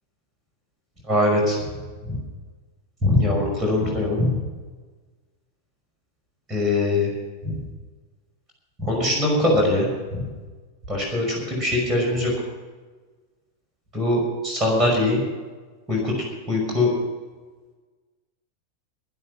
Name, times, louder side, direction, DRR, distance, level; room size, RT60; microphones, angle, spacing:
voice 1, 1.1-1.6 2.1-2.2 3.0-4.3 6.5-7.1 7.4-7.6 8.8-10.2 10.9-12.3 13.9-15.2 15.9-16.1 16.5-16.9, left 2 dB, 25° right, -1 dB, 5.6 m, -22 dB
22.0 x 8.1 x 6.0 m, 1.3 s
figure-of-eight pair, 90°, 0 cm